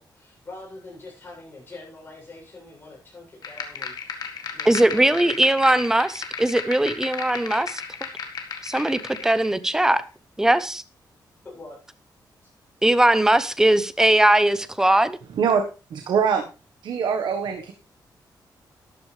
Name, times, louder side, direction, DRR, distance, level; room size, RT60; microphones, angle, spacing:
voice 1, 0.0-5.3 11.4-11.8, left 2 dB, 30° left, -3 dB, 7.7 m, -44 dB
sound 1, 3.4-9.5, left 6 dB, 60° left, 1.8 m, -35 dB
voice 2, 4.7-7.8 8.6-10.0 10.4-10.8 12.8-15.2, right 1 dB, 5° right, 13 dB, 0.8 m, -20 dB
voice 3, 15.9-16.4 16.8-17.7, right 6 dB, 85° right, 4 dB, 1.5 m, -23 dB
13.0 x 11.0 x 3.4 m, 0.31 s
wide cardioid pair, 165°, 8 cm